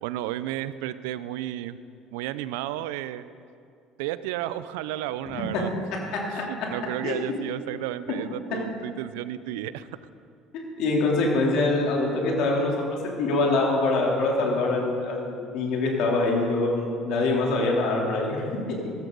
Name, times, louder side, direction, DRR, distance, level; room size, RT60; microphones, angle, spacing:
voice 1, 0.0-1.8 2.1-3.2 4.0-5.7 6.7-9.9, right 13 dB, 75° right, 15 dB, 0.5 m, -32 dB
voice 2, 10.5-12.7 13.2-18.4, left 2 dB, 65° left, -2 dB, 3.4 m, -24 dB
16.5 x 13.5 x 4.0 m, 2.4 s
hypercardioid pair, 65°, 0 cm